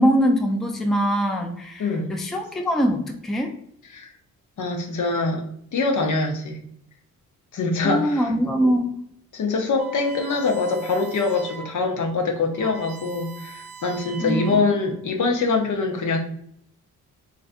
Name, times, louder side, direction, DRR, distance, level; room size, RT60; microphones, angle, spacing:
voice 1, 0.0-3.5 7.8-9.0 14.2-14.6, equal, ahead, 3 dB, 0.4 m, -22 dB
voice 2, 1.8-2.1 3.9-4.1 4.6-5.4 5.7-6.6 7.5-8.3 8.6-8.7 9.3-16.2, left 3 dB, 60° left, 2 dB, 0.7 m, -24 dB
sound 1, 9.8-11.8 12.2-12.3 12.5-14.9, right 5 dB, 85° right, 0.6 m, -41 dB
3.1 x 2.6 x 2.5 m, 0.69 s
cardioid pair, 55°, 35 cm